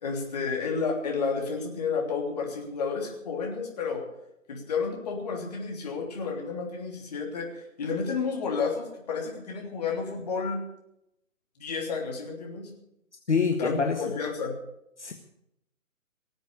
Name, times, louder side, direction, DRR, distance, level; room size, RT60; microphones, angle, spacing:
voice 1, 0.0-4.0 4.5-10.6 11.6-12.7 13.6-14.6, left 5 dB, 30° left, 0 dB, 3.3 m, -31 dB
voice 2, 13.3-14.0 15.0-15.1, left 5 dB, 55° left, 5 dB, 1.5 m, -25 dB
19.0 x 8.0 x 8.4 m, 0.81 s
figure-of-eight pair, 150°, 41 cm